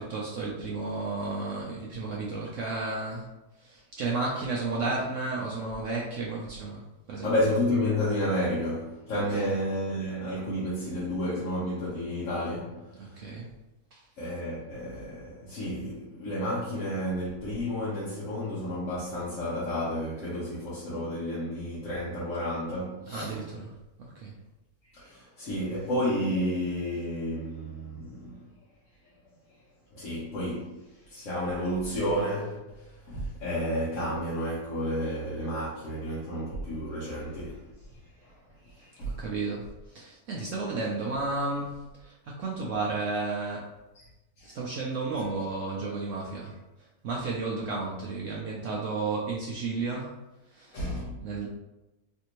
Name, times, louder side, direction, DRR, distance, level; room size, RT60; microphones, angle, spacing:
voice 1, 0.0-3.3 3.6-7.4 9.1-9.5 13.0-13.5 13.9-14.0 23.1-23.7 24.0-24.3 39.0-43.7 44.4-46.6 47.0-50.1 50.5-50.8 51.2-51.5, right 3 dB, 75° right, 0.7 m, -33 dB
voice 2, 7.2-13.2 14.2-23.4 24.9-28.4 29.9-37.6 38.2-38.3 38.7-39.2 43.9-44.0 44.4-44.5 50.7-51.1, equal, 55° left, 1.0 m, -31 dB
3.3 x 2.6 x 2.9 m
omnidirectional pair, 1.8 m